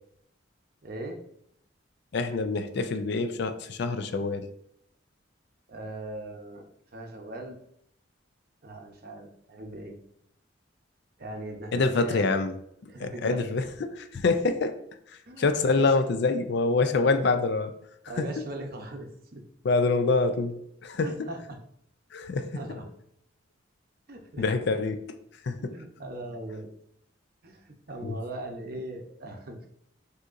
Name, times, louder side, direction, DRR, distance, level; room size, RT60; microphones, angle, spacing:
voice 1, 0.8-1.2 5.7-6.6 6.9-7.6 8.6-10.0 11.2-12.3 12.9-13.5 15.3-15.9 16.8-17.2 18.1-19.4 21.0-21.6 22.3-22.8 24.1-24.4 25.6-26.7 27.4-29.6, right 1 dB, 50° right, 3 dB, 0.7 m, -39 dB
voice 2, 2.1-4.5 11.7-12.5 12.8-14.7 15.4-17.7 18.2-18.3 19.6-21.3 22.1-22.6 24.4-25.0 25.5-25.8 28.0-28.2, left 3 dB, 60° left, 10 dB, 0.4 m, -26 dB
6.3 x 2.8 x 2.5 m, 0.69 s
head